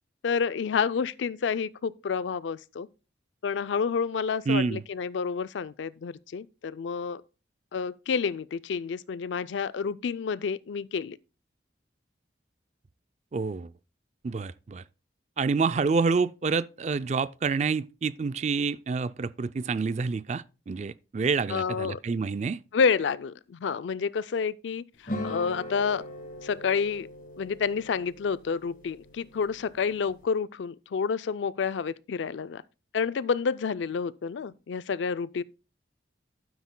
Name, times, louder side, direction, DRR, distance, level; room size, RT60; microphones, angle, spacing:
voice 1, 0.2-2.9 3.4-7.2 7.7-11.2 21.5-22.0 22.7-24.8 25.2-26.0 26.4-27.1 27.4-32.6 32.9-35.4, left 5 dB, 85° left, 0.4 m, -29 dB
voice 2, 4.5-4.8 13.3-13.7 14.2-14.8 15.4-22.6, right 4 dB, 40° right, 0.3 m, -28 dB
sound 1, 25.1-30.2, left 1 dB, 45° left, 1.5 m, -40 dB
12.0 x 9.5 x 2.2 m
head